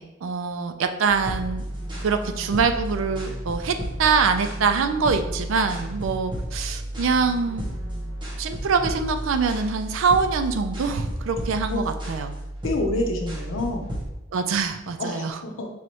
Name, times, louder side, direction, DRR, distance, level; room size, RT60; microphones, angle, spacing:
voice 1, 0.0-1.6 2.0-7.7 8.4-12.4 14.3-15.4, right 5 dB, 90° right, 8 dB, 0.4 m, -24 dB
sound 1, 1.0-14.1, right 1 dB, 25° right, 1.1 m, -33 dB
sound 2, 1.4-9.3, equal, 70° right, 0.8 m, -44 dB
voice 2, 12.6-13.8 15.0-15.7, left 2 dB, 85° left, 3 dB, 0.7 m, -27 dB
4.8 x 3.0 x 2.9 m, 0.99 s
head